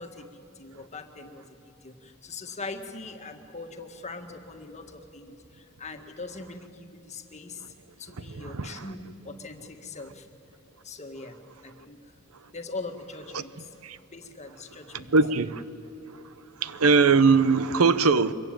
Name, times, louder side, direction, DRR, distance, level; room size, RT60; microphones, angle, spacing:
voice 1, 0.0-1.5 1.8-7.6 8.0-10.3 10.8-11.4 11.6-12.0 12.5-13.7 14.1-15.1, left 3 dB, 30° left, 1.8 m, -41 dB
voice 2, 8.2-8.8 13.3-13.4 13.8-14.0 15.1-15.6 16.6-18.3, right 4 dB, 90° right, 0.9 m, -21 dB
24.0 x 22.5 x 9.1 m
head